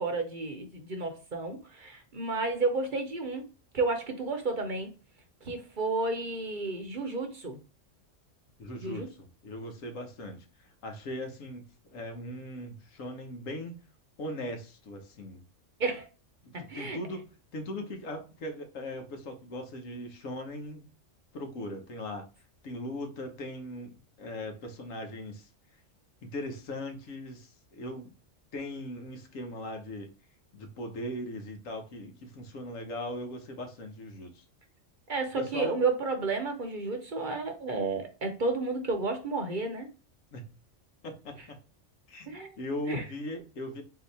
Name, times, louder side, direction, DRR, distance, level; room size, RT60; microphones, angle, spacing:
voice 1, 0.0-3.4 3.7-4.9 5.4-7.6 8.8-9.1 15.8-16.1 16.5-17.0 35.1-39.9 42.3-42.5 42.9-43.0, right 3 dB, 45° right, 0.9 m, -31 dB
voice 2, 8.6-13.8 14.2-15.4 16.4-17.3 17.5-20.9 21.3-22.2 22.6-25.5 26.2-28.1 28.5-30.1 30.5-34.4 35.4-35.8 40.3-40.5 41.0-41.6 42.1-43.8, left 1 dB, 90° left, 1.4 m, -39 dB
4.0 x 2.9 x 4.0 m
omnidirectional pair, 1.3 m